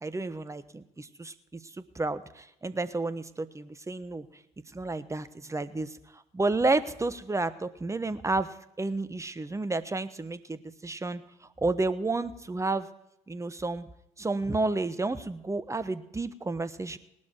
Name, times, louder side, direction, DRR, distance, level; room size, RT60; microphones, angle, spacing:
voice 1, 0.0-4.3 4.7-11.2 11.6-12.9 13.3-13.9 14.2-17.0, right 3 dB, 15° right, 14 dB, 1.2 m, -31 dB
19.0 x 12.0 x 4.5 m, 0.84 s
figure-of-eight pair, 50°, 18 cm